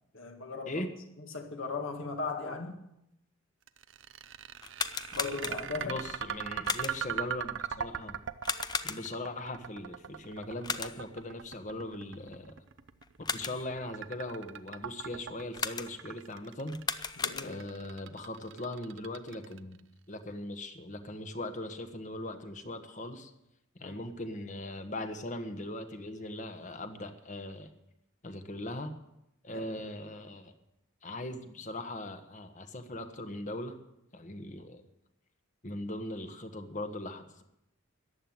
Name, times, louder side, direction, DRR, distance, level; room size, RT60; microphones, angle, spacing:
voice 1, 0.1-0.8 1.2-2.8 5.1-6.0 17.2-17.6 23.8-24.0 29.5-29.7, left 4 dB, 70° left, 2.1 m, -38 dB
sound 1, 3.7-19.8, right 8 dB, 60° right, 0.7 m, -40 dB
sound 2, 4.6-5.9 6.6-7.2 8.4-9.3 10.6-11.2 13.0-13.8 15.5-16.2 16.7-17.8, left 5 dB, 20° left, 0.6 m, -36 dB
voice 2, 5.8-8.2 8.8-12.5 13.3-16.8 17.4-19.8 20.1-23.3 23.8-27.7 28.2-28.9 29.4-30.5 31.0-33.8 34.1-34.8 35.6-37.4, left 1 dB, 40° left, 1.4 m, -39 dB
14.5 x 10.5 x 7.9 m
head